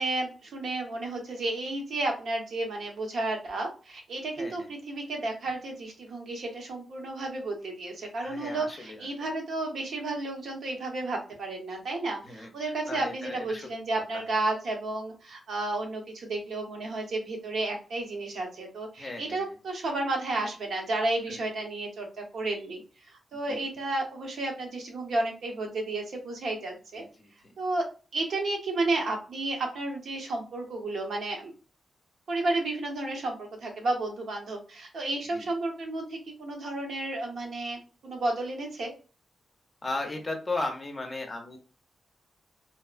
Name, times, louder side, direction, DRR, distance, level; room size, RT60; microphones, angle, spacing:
voice 1, 0.0-27.0 27.6-27.9 28.1-31.5 32.3-38.9, right 2 dB, 75° right, 1 dB, 0.9 m, -32 dB
voice 2, 8.2-9.1 12.2-13.7 14.1-14.2 19.0-19.4 21.3-21.4 23.5-23.6 27.0-27.3 35.3-35.5 39.8-41.6, left 2 dB, 25° left, 3 dB, 0.5 m, -36 dB
2.7 x 2.1 x 2.4 m, 0.36 s
wide cardioid pair, 125°, 0 cm